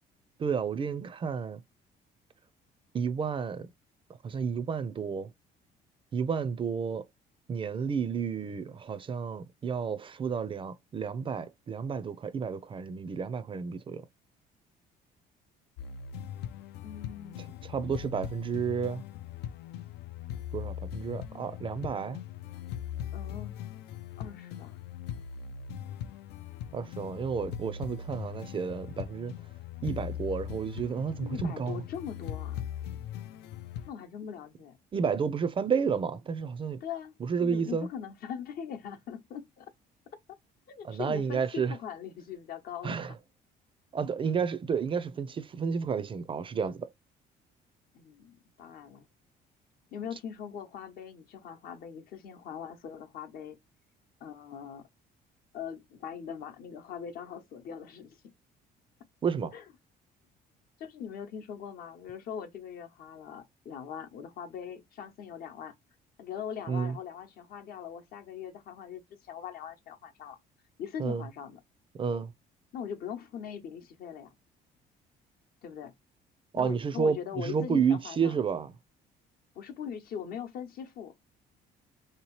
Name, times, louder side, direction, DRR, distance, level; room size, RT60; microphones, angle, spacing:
voice 1, 0.4-1.6 2.9-3.7 4.2-5.3 6.1-7.1 7.5-14.0 17.7-19.0 20.5-22.2 26.7-29.3 29.8-31.8 34.9-36.8 37.2-37.9 40.8-41.7 42.8-43.1 43.9-46.9 59.2-59.5 66.7-67.0 71.0-71.2 71.9-72.3 76.5-78.7, right 6 dB, 30° right, 0.4 m, -31 dB
sound 1, 15.8-33.9, left 9 dB, 80° left, 0.4 m, -40 dB
voice 2, 16.8-17.6 23.1-23.6 24.2-24.8 31.2-32.6 33.9-34.8 36.8-37.1 37.4-39.7 40.7-43.0 47.9-49.1 49.9-53.6 54.2-54.9 55.5-58.2 59.5-59.6 60.8-65.7 66.2-70.4 70.8-71.6 72.7-74.3 75.6-75.9 76.5-78.4 79.5-81.1, left 8 dB, 65° left, 0.8 m, -41 dB
3.3 x 2.9 x 3.1 m
cardioid pair, 110°, 17 cm